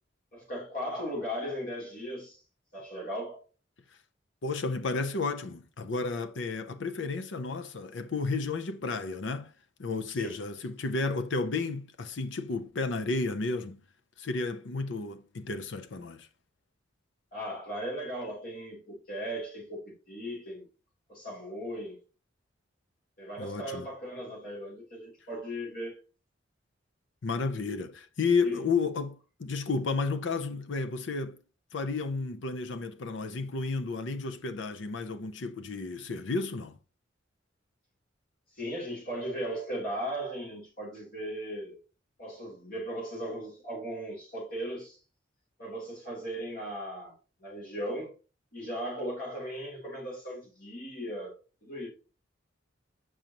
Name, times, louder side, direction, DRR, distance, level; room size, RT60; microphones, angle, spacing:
voice 1, 0.3-2.4 2.7-3.4 10.1-10.4 17.3-20.7 21.1-22.0 23.2-26.0 28.4-28.6 38.6-41.8 42.2-45.0 45.6-48.1 48.5-51.3 51.6-51.9, equal, 50° left, 3.2 m, -37 dB
voice 2, 4.4-9.5 9.8-13.8 14.2-16.3 23.4-23.9 27.2-31.4 31.7-36.7, left 4 dB, 80° left, 0.6 m, -32 dB
6.2 x 5.2 x 2.9 m
head